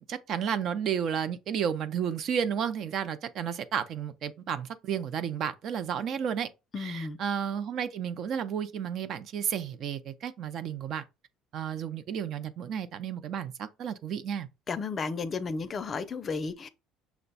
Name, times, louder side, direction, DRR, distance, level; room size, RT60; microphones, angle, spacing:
voice 1, 0.0-6.5 6.8-11.0 11.5-14.5, right 8 dB, 55° right, 0.5 m, -32 dB
voice 2, 6.7-7.2 14.7-16.7, left 4 dB, 35° left, 0.5 m, -33 dB
5.9 x 2.2 x 3.9 m
cardioid pair, 115°, 0 cm